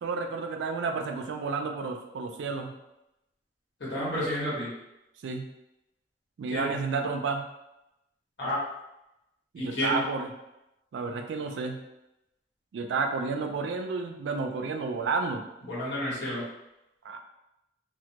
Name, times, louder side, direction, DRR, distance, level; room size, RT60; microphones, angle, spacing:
voice 1, 0.0-2.7 5.2-5.4 6.4-7.4 9.5-10.3 10.9-11.8 12.7-15.4 17.0-17.2, right 4 dB, 80° right, 5 dB, 0.3 m, -31 dB
voice 2, 3.8-4.7 6.5-6.7 8.4-8.6 9.6-10.0 15.7-16.4, left 1 dB, 70° left, -7 dB, 1.0 m, -30 dB
2.1 x 2.1 x 2.7 m, 0.90 s
head